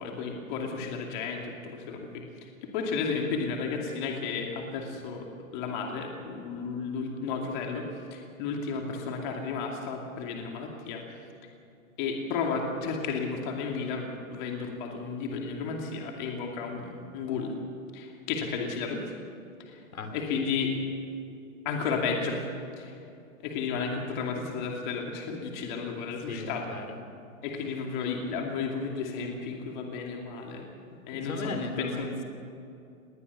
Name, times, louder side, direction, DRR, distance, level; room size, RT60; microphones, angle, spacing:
voice 1, 0.0-2.2 2.6-5.3 5.5-11.0 12.0-17.5 17.9-19.0 19.7-19.8 20.1-20.7 21.6-22.4 22.8-23.0 23.4-26.6 27.4-30.7 31.1-32.2, left 5 dB, 35° left, 1 dB, 2.6 m, -33 dB
voice 2, 26.3-27.0 31.1-32.2, left 2 dB, 75° left, 6 dB, 3.3 m, -36 dB
20.5 x 19.0 x 7.0 m, 2.5 s
hypercardioid pair, 155°, 42 cm